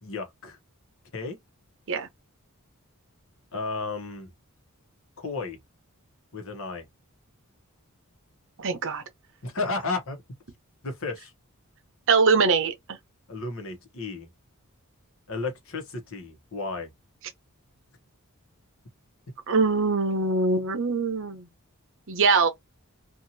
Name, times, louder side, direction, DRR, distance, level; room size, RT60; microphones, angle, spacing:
voice 1, 0.0-0.6 1.1-1.4 3.5-4.3 5.2-5.6 6.3-6.9 9.4-10.2 10.8-11.3 13.3-14.3 15.3-16.9, left 3 dB, 65° left, 0.9 m, -33 dB
voice 2, 8.6-9.0 12.1-13.0 19.5-21.5 22.1-22.5, right 4 dB, 60° right, 0.8 m, -23 dB
2.8 x 2.4 x 2.7 m
head